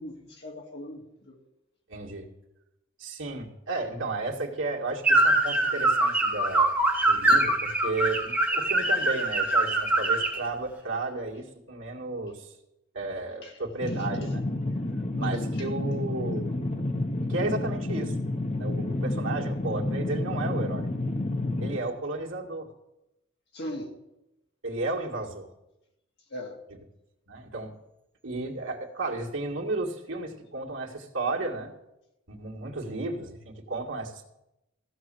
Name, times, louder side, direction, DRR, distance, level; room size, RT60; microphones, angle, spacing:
voice 1, 0.0-1.4 13.4-13.6 14.0-14.1 15.2-15.7 23.5-24.0 26.3-26.6, left 1 dB, 55° left, 2.3 m, -39 dB
voice 2, 1.9-2.3 3.0-6.7 7.0-12.5 12.9-14.4 15.2-16.6 17.3-18.1 18.6-20.9 21.6-22.7 24.6-25.5 27.3-27.8 28.2-31.7 32.3-34.2, right 3 dB, 70° right, 2.0 m, -33 dB
sound 1, 5.0-10.4, right 2 dB, 5° right, 2.4 m, -23 dB
sound 2, 13.8-21.8, left 2 dB, 30° left, 0.9 m, -30 dB
15.0 x 6.5 x 7.6 m
head